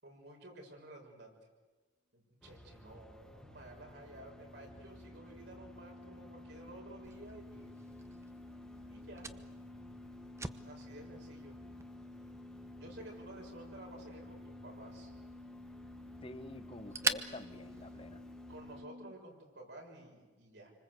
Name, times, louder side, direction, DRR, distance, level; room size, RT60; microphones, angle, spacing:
voice 1, 0.0-1.4 2.1-7.8 8.8-9.3 10.7-11.5 12.8-15.1 16.8-16.9 18.5-20.7, right 1 dB, 75° right, 0 dB, 6.5 m, -53 dB
sound 1, 2.4-18.9, equal, 5° left, 1.2 m, -57 dB
sound 2, 2.9-19.1, left 2 dB, 45° right, 1.8 m, -52 dB
Fire, 7.0-18.6, right 3 dB, 15° right, 0.9 m, -45 dB
voice 2, 16.2-18.2, left 1 dB, 30° left, 12 dB, 1.2 m, -48 dB
27.0 x 25.5 x 8.1 m, 1.3 s
head